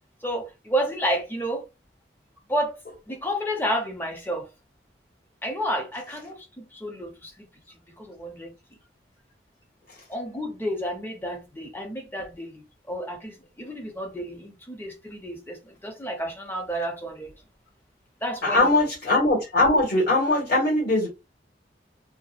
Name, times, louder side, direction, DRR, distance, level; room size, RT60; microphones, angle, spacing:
voice 1, 0.2-1.6 2.5-2.8 3.1-4.5 5.4-7.5 7.9-8.5 10.1-17.3 18.2-18.9, equal, 10° left, 0.4 m, -31 dB
voice 2, 18.4-21.1, left 2 dB, 60° left, 1.3 m, -21 dB
2.6 x 2.0 x 2.3 m
head